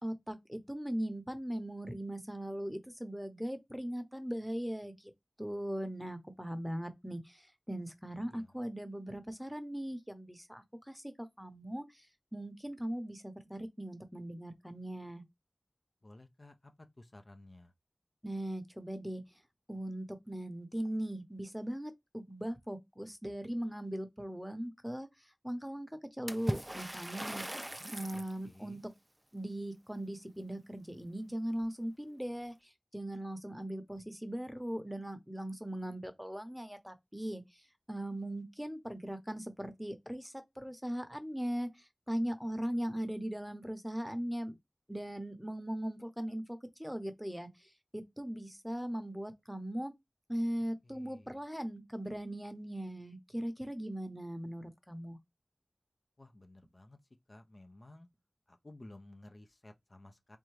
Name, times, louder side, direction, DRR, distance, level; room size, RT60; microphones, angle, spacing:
voice 1, 0.0-5.1 5.4-11.0 11.4-12.1 12.3-15.2 18.2-19.2 19.7-25.1 25.4-27.5 27.9-28.9 29.3-32.5 32.9-37.4 37.9-44.5 44.9-47.5 47.9-49.9 50.3-55.2, right 1 dB, 5° right, 0.8 m, -39 dB
voice 2, 16.0-16.7 17.0-17.7 28.1-28.8 50.8-51.4 56.2-57.0 57.3-58.1 58.5-60.4, left 1 dB, 60° left, 0.6 m, -55 dB
Water / Splash splatter, 26.3-28.4, right 1 dB, 20° right, 0.4 m, -39 dB
3.8 x 3.5 x 3.2 m
wide cardioid pair, 45°, 0 cm